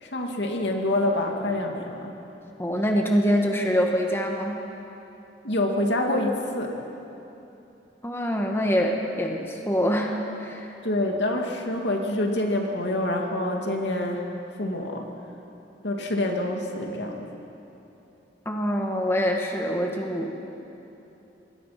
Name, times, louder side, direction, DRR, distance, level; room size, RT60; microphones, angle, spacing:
voice 1, 0.0-2.1 5.4-6.8 10.8-14.2 14.6-15.1 15.8-17.3, left 1 dB, 75° left, 2 dB, 2.5 m, -26 dB
voice 2, 2.6-4.6 8.0-10.7 18.4-20.4, equal, 15° left, 1 dB, 1.6 m, -25 dB
26.0 x 21.0 x 6.0 m, 2.9 s
head